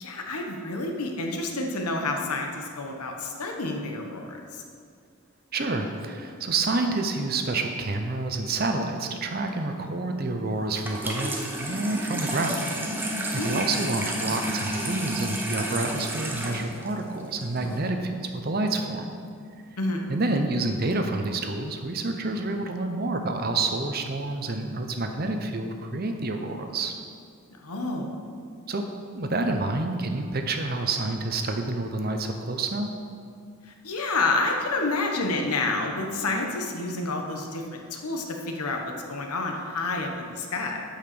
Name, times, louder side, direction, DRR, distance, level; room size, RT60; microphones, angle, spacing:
voice 1, 0.0-4.6 13.4-13.6 19.8-20.1 27.6-28.1 33.7-40.8, left 2 dB, 90° left, 2 dB, 1.2 m, -29 dB
voice 2, 5.5-12.7 13.0-13.2 13.4-19.1 20.1-26.9 28.7-28.9 29.1-32.9, right 2 dB, 40° right, 5 dB, 0.7 m, -28 dB
Water tap faucet / Sink (filling or washing), 10.8-17.8, right 1 dB, 10° right, 0.8 m, -31 dB
sound 1, 17.6-17.9, equal, 20° left, 0.9 m, -47 dB
8.6 x 5.8 x 6.8 m, 2.2 s
head